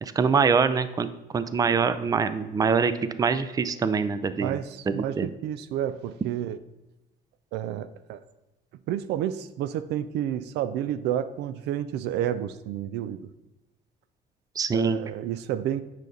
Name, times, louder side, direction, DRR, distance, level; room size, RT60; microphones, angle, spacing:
voice 1, 0.0-2.9 3.2-4.6 4.9-5.3 14.6-15.0, right 5 dB, 20° right, 13 dB, 0.4 m, -24 dB
voice 2, 4.4-6.6 7.5-8.2 8.9-13.3 14.7-15.8, right 11 dB, 80° right, 13 dB, 0.4 m, -30 dB
9.1 x 5.1 x 4.0 m, 0.96 s
cardioid pair, 110°, 17 cm